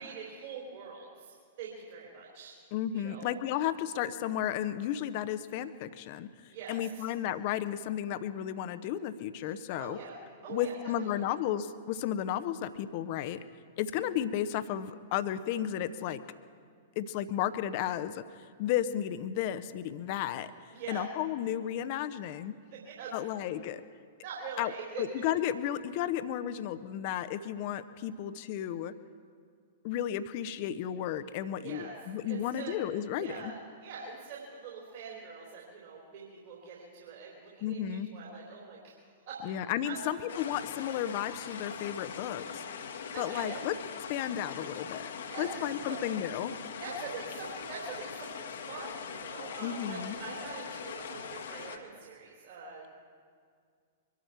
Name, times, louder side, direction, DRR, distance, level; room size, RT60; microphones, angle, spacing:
voice 1, 0.0-2.5 2.9-3.3 6.5-7.0 9.8-11.3 20.7-21.0 22.7-23.2 24.2-25.2 31.6-31.9 32.3-32.7 33.2-38.9 39.3-39.4 39.9-40.0 43.1-43.7 45.3-46.1 46.8-52.8, right 5 dB, 50° right, -4 dB, 3.9 m, -44 dB
voice 2, 2.7-6.3 6.7-10.0 10.5-13.4 13.8-16.2 17.0-20.5 20.9-22.5 23.1-23.8 24.6-24.7 25.0-28.9 29.8-33.5 37.6-38.1 39.4-42.6 43.2-43.7 44.1-45.1 45.4-46.5 49.6-50.2, left 11 dB, 40° left, 13 dB, 0.8 m, -33 dB
sound 1, 40.3-51.8, left 6 dB, 60° left, 1.3 m, -41 dB
24.0 x 12.5 x 4.6 m, 2.1 s
figure-of-eight pair, 105°, 0 cm